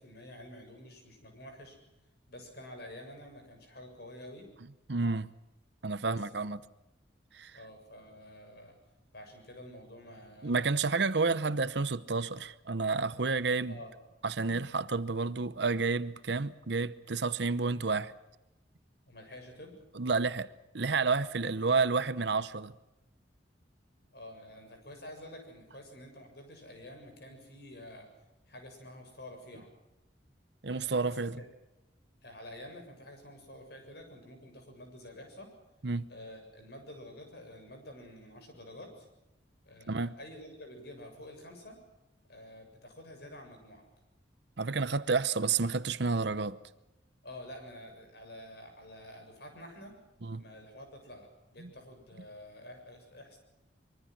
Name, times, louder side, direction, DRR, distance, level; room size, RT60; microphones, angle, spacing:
voice 1, 0.0-1.8 2.3-4.5 6.0-6.6 7.5-8.8 9.1-10.7 13.7-13.9 19.0-19.8 21.4-21.6 24.1-28.1 28.5-29.7 30.7-31.5 32.2-35.5 36.1-39.1 39.7-41.8 42.3-43.8 47.2-49.9 50.4-53.4, left 1 dB, 60° left, 7.1 m, -49 dB
voice 2, 4.9-5.3 5.8-6.6 7.3-7.5 10.4-13.8 14.2-18.1 19.9-20.5 20.7-22.7 30.6-31.4 35.8-36.1 39.9-40.1 44.6-46.6 50.2-50.4 51.6-51.7, right 4 dB, 65° right, 0.9 m, -30 dB
24.5 x 23.0 x 6.1 m
head